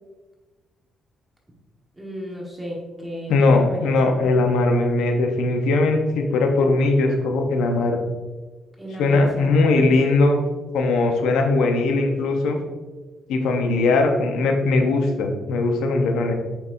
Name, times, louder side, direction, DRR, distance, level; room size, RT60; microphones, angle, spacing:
voice 1, 2.0-3.9 8.8-9.5, equal, 10° right, -2 dB, 1.3 m, -34 dB
voice 2, 3.3-8.0 9.0-10.4 10.7-12.6 13.3-16.3, left 3 dB, 85° left, 4 dB, 0.8 m, -20 dB
6.8 x 5.3 x 2.6 m, 1.2 s
cardioid pair, 90°, 0 cm